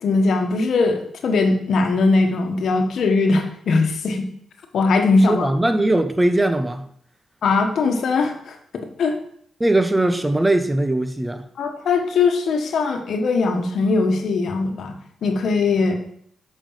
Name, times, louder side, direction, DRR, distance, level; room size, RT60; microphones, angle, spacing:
voice 1, 0.0-4.2 4.7-5.5 7.4-8.6 9.0-9.2 11.6-15.9, left 3 dB, 75° left, 1.3 m, -20 dB
voice 2, 5.3-6.9 9.6-11.4, right 1 dB, 20° right, 1.1 m, -20 dB
8.5 x 5.6 x 5.7 m
supercardioid pair, 50°, 0 cm